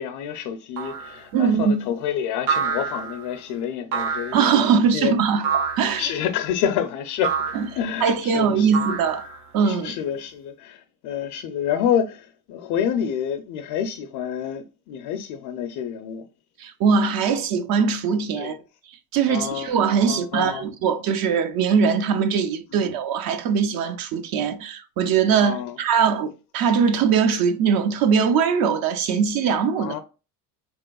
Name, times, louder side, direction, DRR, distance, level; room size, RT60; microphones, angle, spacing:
voice 1, 0.0-5.1 5.8-7.4 7.8-8.8 9.6-16.3 18.4-18.6 19.3-19.7 20.1-20.7 22.7-22.8 25.4-25.8 29.8-30.0, left 9 dB, 55° left, 0.5 m, -28 dB
sound 1, 0.8-1.2 2.5-3.3 3.9-4.5 5.4-6.0 7.2-7.7 8.7-9.5, right 6 dB, 80° right, 1.2 m, -27 dB
voice 2, 1.3-1.8 4.3-6.1 7.5-7.7 8.0-9.2 9.5-10.0 16.6-18.6 19.1-30.0, right 6 dB, 50° right, 0.6 m, -21 dB
3.3 x 3.0 x 2.2 m
supercardioid pair, 90°, 46 cm